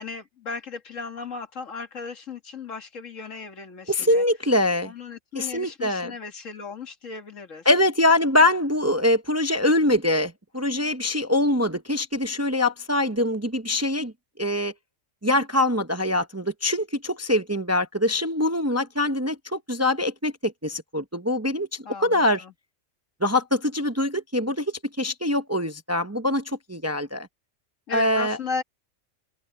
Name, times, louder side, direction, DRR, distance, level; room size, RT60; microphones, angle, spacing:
voice 1, 0.0-4.2 4.8-7.7 21.8-22.5 27.9-28.6, left 4 dB, 75° left, 2.2 m, -36 dB
voice 2, 3.9-4.9 5.3-6.1 7.7-14.1 14.4-14.7 15.2-22.4 23.2-27.3 27.9-28.4, left 1 dB, 15° right, 0.7 m, -23 dB
open air
omnidirectional pair, 1.3 m